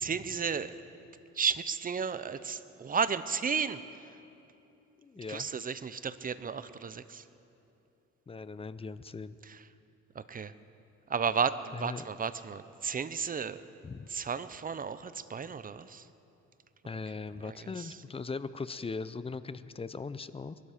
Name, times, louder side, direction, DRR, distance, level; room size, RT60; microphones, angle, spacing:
voice 1, 0.0-0.7 1.3-3.8 5.3-7.2 9.4-9.6 10.1-10.5 11.1-13.6 14.1-16.1 17.4-18.0, right 6 dB, 30° right, 14 dB, 0.7 m, -33 dB
voice 2, 5.0-5.5 8.3-9.4 11.7-12.0 13.8-14.1 16.8-20.6, left 4 dB, 20° left, 15 dB, 0.5 m, -39 dB
22.5 x 12.0 x 5.0 m, 2.8 s
cardioid pair, 90°, 30 cm